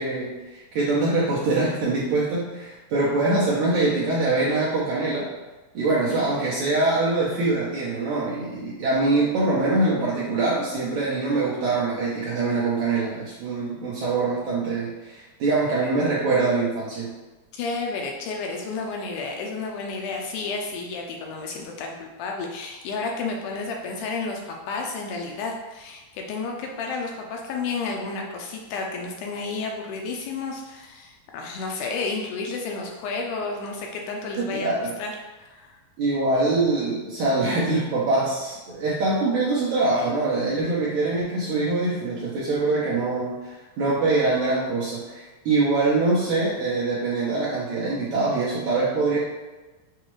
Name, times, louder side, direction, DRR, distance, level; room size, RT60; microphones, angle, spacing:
voice 1, 0.0-5.3 5.7-17.1 34.4-34.9 36.0-49.2, right 3 dB, 70° right, -7 dB, 1.9 m, -24 dB
voice 2, 17.5-35.8, left 4 dB, 80° left, 1 dB, 1.9 m, -31 dB
7.0 x 2.4 x 3.0 m, 1.2 s
omnidirectional pair, 3.9 m